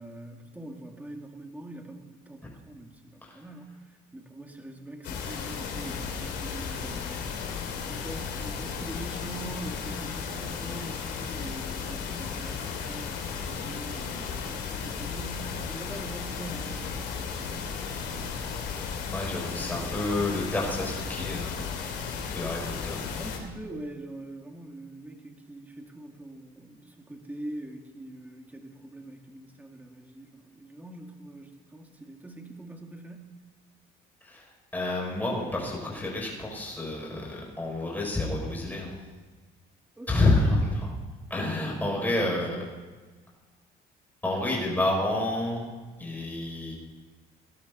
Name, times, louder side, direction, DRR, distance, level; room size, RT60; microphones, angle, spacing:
voice 1, 0.0-17.6 22.4-22.7 23.2-33.4 40.0-40.4 41.4-42.8, right 1 dB, 10° right, 3 dB, 2.0 m, -43 dB
sound 1, 5.0-23.4, left 6 dB, 80° left, 2.9 m, -35 dB
voice 2, 19.1-21.8 22.3-23.0 34.2-34.5 34.7-38.9 40.1-40.9 41.3-42.6 44.2-45.7 46.0-46.7, left 2 dB, 10° left, -2 dB, 6.0 m, -29 dB
19.5 x 12.0 x 4.2 m, 1.3 s
cardioid pair, 110°, 17 cm